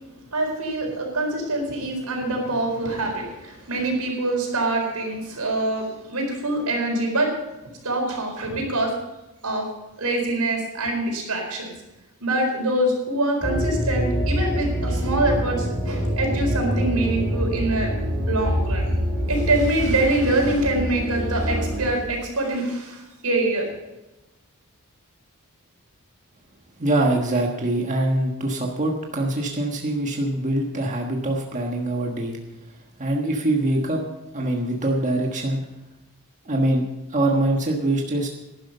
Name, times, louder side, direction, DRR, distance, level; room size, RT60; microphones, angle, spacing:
voice 1, 0.3-7.3 7.8-8.9 9.4-9.7 10.0-11.7 12.2-17.9 18.3-18.9 19.3-23.7, right 2 dB, 90° right, 1 dB, 4.6 m, -24 dB
sound 1, 13.4-21.9, equal, 5° left, 5.9 m, -25 dB
voice 2, 26.8-32.4 33.0-34.0 34.3-35.6 36.4-36.8 37.1-38.3, right 1 dB, 35° right, 0 dB, 1.4 m, -23 dB
12.5 x 11.0 x 5.5 m, 1.0 s
head